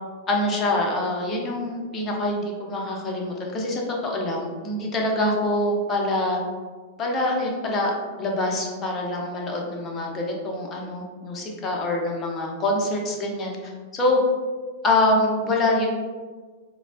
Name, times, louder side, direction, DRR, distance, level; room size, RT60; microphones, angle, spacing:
voice 1, 0.3-6.4 7.0-7.9 8.2-14.2 14.8-15.9, left 1 dB, 30° left, -1 dB, 0.7 m, -25 dB
3.8 x 2.1 x 2.5 m, 1.5 s
figure-of-eight pair, 95°, 0 cm